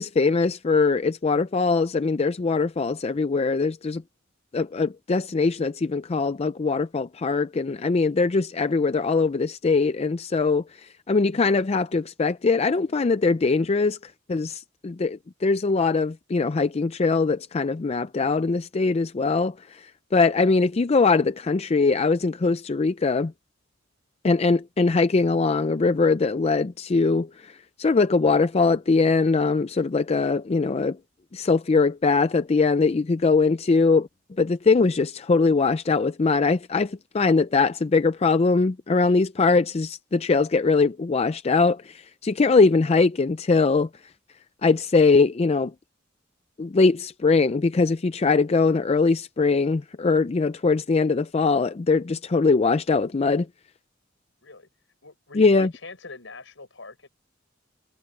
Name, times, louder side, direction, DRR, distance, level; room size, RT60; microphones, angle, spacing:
voice 1, 0.0-4.0 4.5-23.3 24.2-31.0 31.3-34.1 34.4-43.9 44.6-45.7 46.6-53.5 55.3-55.7, left 4 dB, 30° left, 0.4 m, -22 dB
voice 2, 55.0-57.1, left 3 dB, 70° left, 7.2 m, -43 dB
head